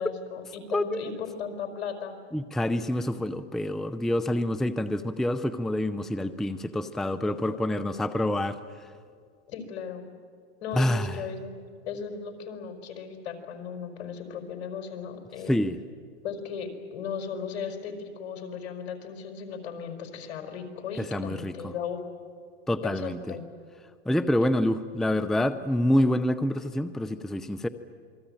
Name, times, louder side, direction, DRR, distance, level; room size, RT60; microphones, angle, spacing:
voice 1, 0.0-2.2 9.5-10.1 10.6-11.5 11.8-15.6 16.2-22.0 22.8-23.4, left 6 dB, 65° left, 6 dB, 4.9 m, -36 dB
voice 2, 0.7-1.1 2.3-8.9 10.7-11.2 15.5-15.8 21.0-21.7 22.7-23.4 24.1-27.7, left 1 dB, ahead, 12 dB, 0.6 m, -27 dB
27.5 x 21.5 x 8.9 m, 2.2 s
supercardioid pair, 130°, 34 cm